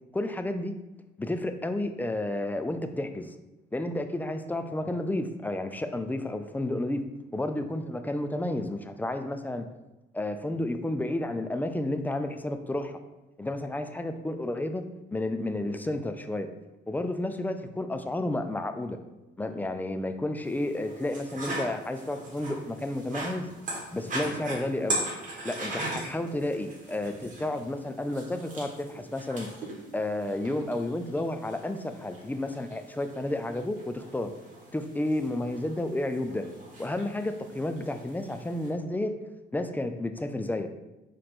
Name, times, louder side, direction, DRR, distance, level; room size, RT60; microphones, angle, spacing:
voice 1, 0.1-0.7 1.2-3.3 3.7-7.0 7.3-9.7 10.1-13.0 13.4-14.8 15.1-16.5 16.9-19.0 19.4-23.5 23.9-25.0 25.4-29.5 29.9-34.3 34.7-36.5 36.8-39.1 39.5-40.7, left 1 dB, 10° left, 8 dB, 0.4 m, -31 dB
sound 1, 20.4-38.7, right 1 dB, 40° right, 1.6 m, -40 dB
4.6 x 3.2 x 3.7 m, 1.0 s
cardioid pair, 90°, 20 cm